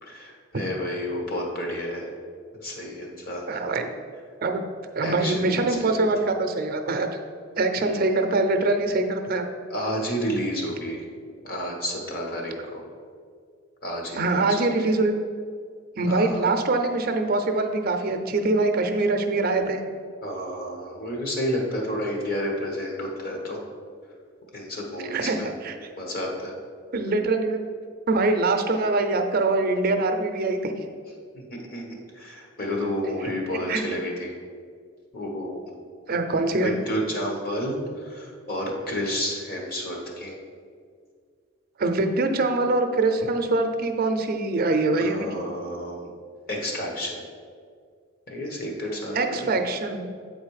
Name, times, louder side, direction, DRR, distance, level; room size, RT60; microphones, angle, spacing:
voice 1, 0.0-2.1 2.6-3.6 5.0-6.1 7.8-8.2 9.7-11.0 11.4-12.8 13.8-14.9 16.1-16.5 20.2-23.6 24.5-25.5 25.9-26.5 31.4-34.3 35.1-35.7 36.5-40.4 45.0-46.1 46.5-47.3 48.3-49.5, equal, 50° left, 0 dB, 1.3 m, -31 dB
voice 2, 3.5-3.9 4.4-4.6 4.9-7.1 7.6-9.4 14.2-15.1 16.0-19.8 25.0-25.4 25.6-25.7 26.9-27.7 28.1-30.7 33.7-33.8 36.1-36.8 41.8-45.3 49.2-50.0, right 2 dB, 50° right, 6 dB, 0.5 m, -23 dB
7.9 x 4.2 x 4.8 m, 2.1 s
head